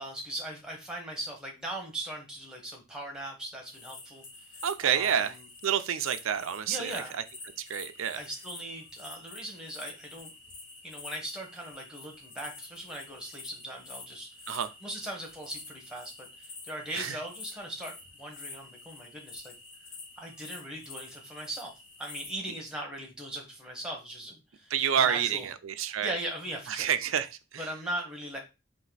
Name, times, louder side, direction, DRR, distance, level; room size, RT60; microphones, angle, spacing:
voice 1, 0.0-4.2 4.8-5.3 6.7-7.1 8.1-10.3 10.8-14.3 14.8-19.5 20.2-21.7 22.0-25.5 26.0-26.9 27.6-28.4, right 1 dB, 5° right, 0 dB, 1.2 m, -39 dB
sound 1, 3.7-22.4, left 3 dB, 60° left, 1.3 m, -48 dB
voice 2, 4.6-5.4 5.6-7.2 7.6-8.2 14.5-14.7 16.9-17.2 24.7-26.1 26.7-27.7, right 8 dB, 75° right, 11 dB, 0.5 m, -29 dB
4.2 x 2.6 x 4.0 m, 0.26 s
head